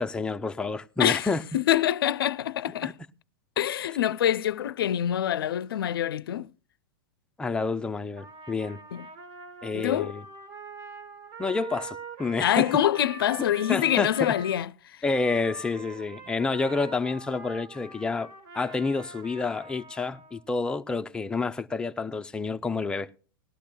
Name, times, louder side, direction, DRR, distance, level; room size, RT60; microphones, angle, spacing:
voice 1, 0.0-1.4 2.8-2.9 7.4-8.8 9.6-10.2 11.4-12.7 13.7-14.3 15.0-18.3 18.5-23.1, left 4 dB, 5° left, 0.4 m, -29 dB
voice 2, 1.5-2.9 3.6-6.5 8.9-9.0 9.7-10.1 12.4-14.7, left 11 dB, 85° left, 0.4 m, -25 dB
Trumpet, 8.2-14.6 15.1-20.4, right 3 dB, 40° right, 1.7 m, -44 dB
19.0 x 12.0 x 2.2 m
hypercardioid pair, 135°, 12 cm